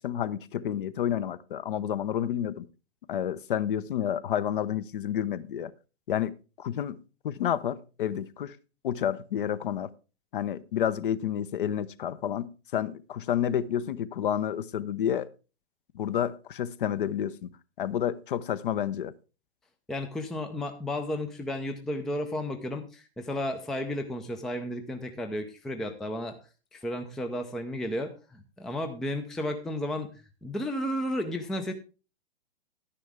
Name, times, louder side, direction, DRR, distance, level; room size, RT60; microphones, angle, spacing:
voice 1, 0.0-2.7 3.1-5.7 6.1-7.0 7.2-8.6 8.8-9.9 10.3-15.3 15.9-17.5 17.8-19.1, left 10 dB, 50° left, 0.8 m, -30 dB
voice 2, 19.9-26.4 26.7-30.1 30.4-31.7, left 1 dB, ahead, 0.4 m, -33 dB
11.5 x 10.0 x 3.4 m
figure-of-eight pair, 110°, 34 cm